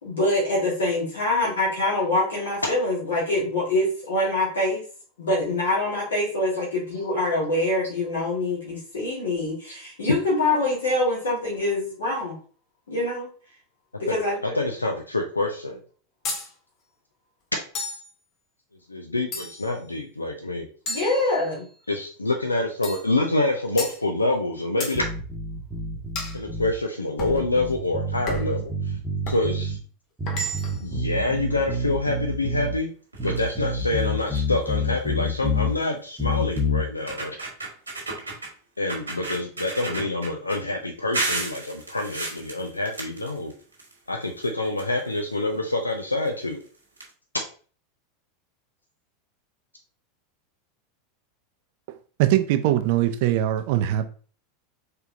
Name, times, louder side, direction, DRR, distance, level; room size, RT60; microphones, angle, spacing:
voice 1, 0.0-4.8 5.2-12.3 12.9-13.3 14.0-14.5 20.9-21.7, left 2 dB, 70° left, -5 dB, 1.5 m, -25 dB
voice 2, 14.5-15.8 18.9-20.7 21.9-25.1 26.3-28.9 29.3-29.8 30.8-32.9 33.2-37.4 38.8-43.5 44.1-46.6, left 2 dB, 85° left, 3 dB, 0.4 m, -26 dB
sound 1, 16.2-16.5 17.7-18.1 19.3-19.8 20.9-21.8 22.8-23.1 23.8-24.0 24.8-25.0 26.1-26.4 27.2-27.4 28.3-28.6 29.2-29.5 30.3-30.9, left 1 dB, 40° left, 1.0 m, -33 dB
sound 2, 24.9-26.7 27.2-29.8 30.2-32.8 33.2-35.7 36.2-36.8, left 1 dB, 15° right, 0.9 m, -28 dB
sound 3, 33.1-33.5 34.0-34.1 34.3-34.6 35.8-35.9 36.6-36.7 37.0-38.5 38.9-40.6 41.1-43.9 44.2-45.3 46.2-46.3 46.6-46.7 47.0-47.1, right 2 dB, 80° right, 1.3 m, -32 dB
voice 3, 52.2-54.3, right 13 dB, 55° right, 9 dB, 0.5 m, -22 dB
4.4 x 3.4 x 2.6 m, 0.41 s
figure-of-eight pair, 85°, 0 cm